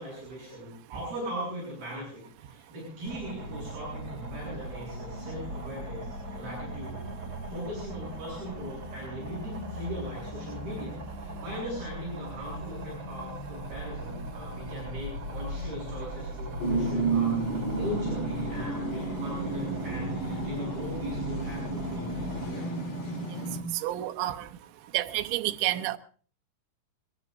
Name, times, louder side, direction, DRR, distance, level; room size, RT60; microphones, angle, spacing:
voice 1, 0.0-7.0 7.5-22.7, equal, 55° right, 9.7 m, -39 dB
sound 1, 3.0-22.5, right 1 dB, 30° right, 3.5 m, -39 dB
sound 2, 16.6-23.6, right 3 dB, 85° left, 7.0 m, -31 dB
voice 2, 23.7-24.5 24.9-26.0, right 15 dB, 80° right, 3.2 m, -29 dB
22.0 x 22.0 x 2.6 m
omnidirectional pair, 5.4 m